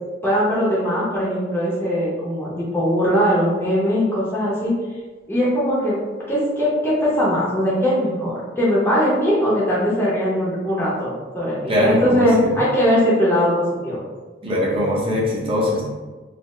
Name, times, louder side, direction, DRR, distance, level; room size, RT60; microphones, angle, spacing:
voice 1, 0.2-4.7 5.3-6.0 6.3-14.0, equal, 10° left, -8 dB, 0.7 m, -20 dB
voice 2, 11.7-12.6 14.4-15.9, equal, 30° right, -4 dB, 0.7 m, -21 dB
4.2 x 2.0 x 3.0 m, 1.3 s
head